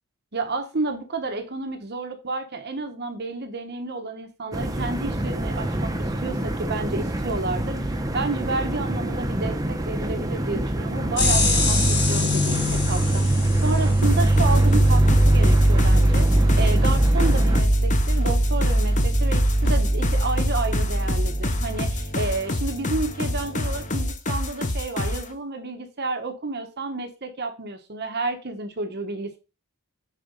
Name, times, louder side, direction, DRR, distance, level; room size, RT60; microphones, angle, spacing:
voice 1, 0.3-29.4, right 3 dB, 50° right, 6 dB, 1.1 m, -31 dB
sound 1, 4.5-17.6, right 1 dB, 15° right, 0.9 m, -28 dB
sound 2, 11.2-24.1, right 1 dB, 55° left, 3.1 m, -21 dB
sound 3, 14.0-25.3, left 1 dB, 35° left, 0.9 m, -28 dB
9.5 x 4.0 x 5.2 m, 0.31 s
head